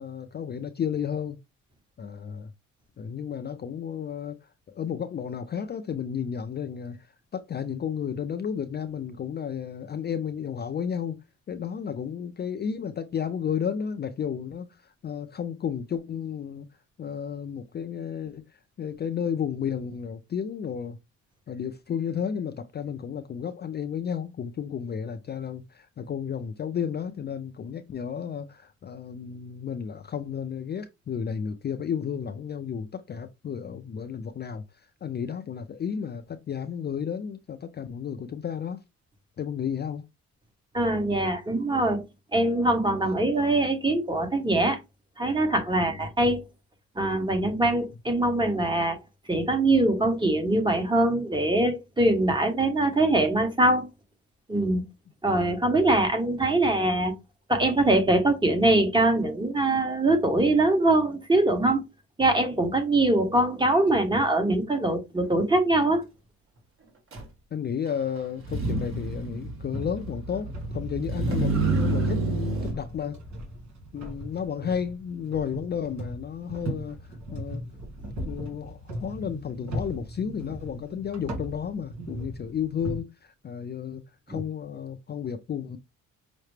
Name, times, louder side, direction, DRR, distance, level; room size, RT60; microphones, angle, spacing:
voice 1, 0.0-1.4 2.0-2.5 3.0-11.2 11.5-16.7 17.0-21.0 21.5-38.8 39.4-40.1 45.8-45.9 67.5-73.2 73.9-77.6 78.2-85.8, left 7 dB, 35° left, 0.4 m, -32 dB
voice 2, 40.7-42.0 42.3-44.8 45.2-46.4 46.9-49.0 49.3-53.9 54.5-54.8 55.2-57.1 57.5-61.8 62.2-66.0 84.3-84.4, right 2 dB, 15° right, 1.2 m, -23 dB
Motor vehicle (road), 67.1-67.2 68.4-72.7, right 3 dB, 45° right, 1.7 m, -28 dB
sound 1, 69.7-83.0, right 1 dB, 70° right, 1.8 m, -38 dB
5.7 x 2.1 x 3.2 m
cardioid pair, 90°, 30 cm